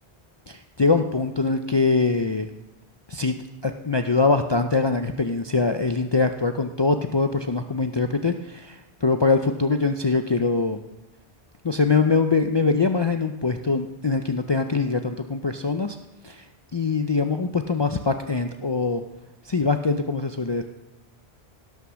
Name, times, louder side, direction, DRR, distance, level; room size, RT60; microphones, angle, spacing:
voice 1, 0.5-2.5 3.1-3.4 3.6-10.8 11.6-16.0 16.2-16.4 16.7-19.0 19.4-20.6, left 4 dB, 40° left, 6 dB, 0.4 m, -23 dB
17.5 x 5.9 x 6.2 m, 1.0 s
omnidirectional pair, 1.1 m